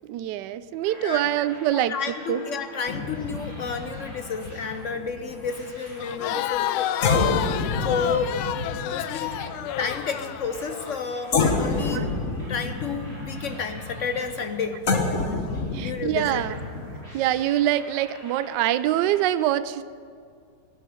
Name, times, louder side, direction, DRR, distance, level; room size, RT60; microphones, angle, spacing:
voice 1, 0.0-1.9 2.3-2.4 11.9-12.0 15.7-16.6 17.1-19.8, right 12 dB, 70° right, 14 dB, 1.1 m, -24 dB
sound 1, 0.8-15.7 16.2-19.2, right 1 dB, 40° right, 5.6 m, -47 dB
voice 2, 1.7-8.4 8.8-9.3 9.8-12.0 12.5-14.8 15.8-16.4, left 5 dB, 60° left, 7 dB, 0.8 m, -31 dB
sound 2, 2.9-6.1 6.5-6.6 7.0-11.0 11.3-17.0, left 3 dB, 45° left, 1.4 m, -29 dB
Crowd, 6.0-11.0, left 13 dB, 90° left, 1.4 m, -30 dB
17.5 x 8.5 x 9.6 m, 2.2 s
omnidirectional pair, 2.2 m